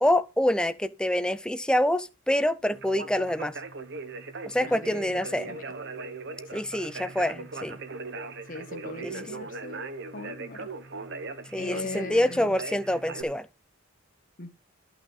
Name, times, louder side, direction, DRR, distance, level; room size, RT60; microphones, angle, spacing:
voice 1, 0.0-3.5 4.5-5.5 6.5-7.8 9.0-9.1 11.5-13.5, left 1 dB, 5° left, 0.5 m, -26 dB
Conversation, 2.7-13.2, right 3 dB, 60° right, 1.3 m, -39 dB
voice 2, 4.6-5.6 6.5-6.6 8.5-9.8 10.1-10.7 11.6-12.6 14.4-14.5, left 3 dB, 40° left, 1.1 m, -40 dB
13.0 x 6.1 x 5.5 m
head